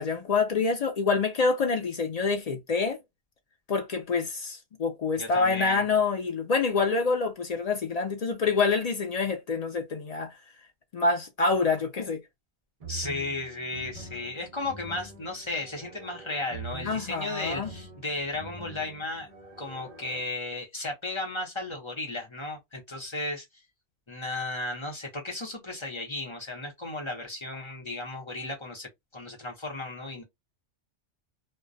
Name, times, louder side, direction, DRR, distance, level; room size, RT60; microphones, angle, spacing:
voice 1, 0.0-3.0 3.7-10.3 10.9-12.2 16.8-17.7, left 4 dB, 60° left, 0.4 m, -26 dB
voice 2, 5.2-5.8 12.9-19.3 19.6-23.4 24.1-30.2, left 2 dB, 30° left, 0.7 m, -35 dB
sound 1, 12.8-20.2, right 4 dB, 45° right, 0.6 m, -44 dB
2.2 x 2.2 x 2.5 m
omnidirectional pair, 1.2 m